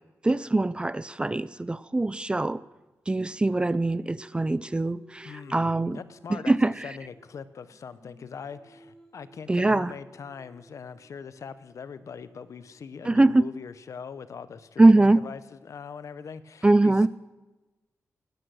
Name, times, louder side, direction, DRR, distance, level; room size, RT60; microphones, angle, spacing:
voice 1, 0.2-2.6 3.1-6.0 6.3-6.9 9.5-9.9 13.0-13.5 14.8-15.2 16.6-17.1, right 2 dB, 15° right, 0.3 m, -22 dB
Singing, 3.1-7.4 7.7-13.7, equal, 10° left, 2.8 m, -56 dB
voice 2, 5.2-6.5 6.8-17.1, left 6 dB, 65° left, 0.7 m, -42 dB
18.5 x 9.1 x 6.3 m
wide cardioid pair, 110°, 6 cm